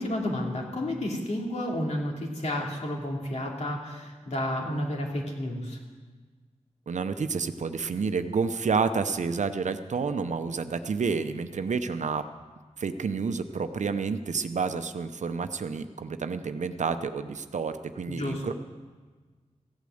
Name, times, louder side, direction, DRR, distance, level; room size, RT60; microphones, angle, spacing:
voice 1, 0.0-5.8 18.1-18.5, left 1 dB, 65° left, -1 dB, 2.8 m, -31 dB
voice 2, 6.9-12.2 12.8-18.5, right 5 dB, 80° right, 10 dB, 0.7 m, -29 dB
15.5 x 8.5 x 7.8 m, 1.4 s
wide cardioid pair, 85°, 12 cm